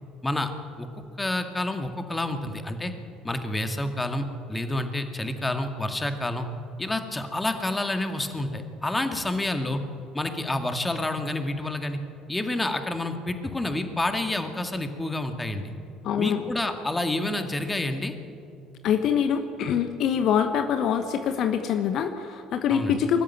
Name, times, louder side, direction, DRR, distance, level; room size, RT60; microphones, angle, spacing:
voice 1, 1.2-2.9 3.2-6.5 6.8-9.8 10.1-12.0 12.3-15.7 16.2-18.1 22.7-23.0, left 2 dB, 15° left, 6 dB, 2.1 m, -29 dB
voice 2, 16.0-16.4 18.8-23.2, left 8 dB, 50° left, 8 dB, 1.1 m, -24 dB
24.5 x 13.5 x 9.0 m, 2.7 s
figure-of-eight pair, 55°, 0 cm